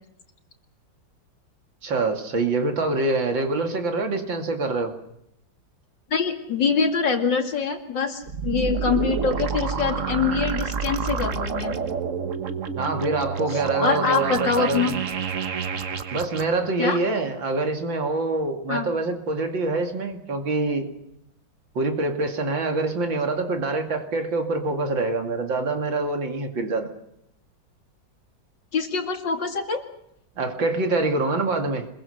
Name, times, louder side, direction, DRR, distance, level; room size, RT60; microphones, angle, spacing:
voice 1, 1.8-4.9 12.8-14.8 16.1-20.9 21.7-26.9 30.4-31.9, right 3 dB, 85° right, 4 dB, 3.2 m, -25 dB
voice 2, 6.1-11.7 13.5-14.9 16.8-17.0 18.7-18.9 28.7-29.8, left 5 dB, 75° left, 4 dB, 3.1 m, -24 dB
sound 1, 8.2-16.4, right 6 dB, 45° right, 1.4 m, -28 dB
25.5 x 22.0 x 6.7 m, 0.77 s
omnidirectional pair, 2.0 m